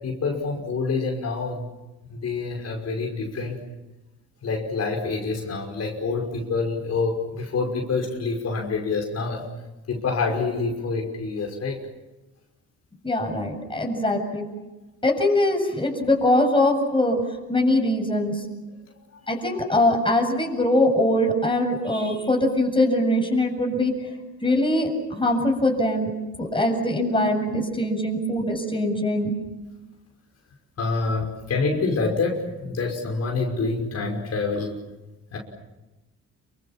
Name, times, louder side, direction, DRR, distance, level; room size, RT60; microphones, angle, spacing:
voice 1, 0.0-1.6 2.1-3.6 4.4-9.4 9.9-11.8 30.8-34.8 35.3-35.4, left 4 dB, 55° left, 1 dB, 5.8 m, -27 dB
voice 2, 13.0-14.4 15.0-17.2 17.5-18.4 19.3-23.9 24.4-26.1 26.4-29.3, left 1 dB, 15° left, 2 dB, 7.6 m, -22 dB
28.0 x 25.0 x 7.5 m, 1.0 s
cardioid pair, 90°, 30 cm